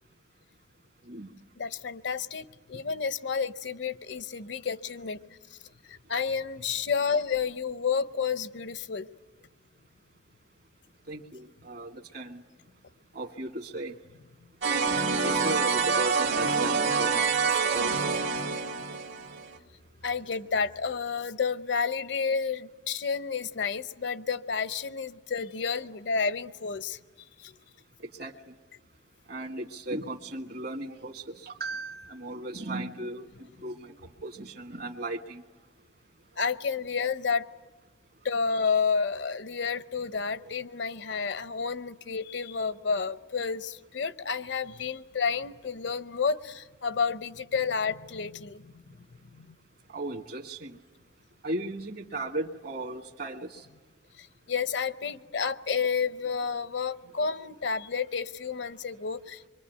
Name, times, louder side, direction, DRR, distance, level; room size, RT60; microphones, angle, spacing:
voice 1, 1.6-5.2 5.5-5.6 5.9-9.1 20.0-27.0 27.4-27.5 36.4-37.5 38.2-48.8 49.3-49.5 54.2-59.5, left 5 dB, 70° left, 15 dB, 0.7 m, -30 dB
voice 2, 11.1-12.4 13.1-13.9 15.2-17.3 17.7-17.9 28.2-28.5 29.3-33.3 33.6-33.9 34.2-35.4 40.4-40.5 49.9-50.8 51.4-53.7, right 2 dB, 55° right, 8 dB, 1.6 m, -36 dB
sound 1, 14.6-19.5, right 5 dB, 70° right, 2.0 m, -26 dB
25.0 x 23.5 x 9.1 m, 1.3 s
head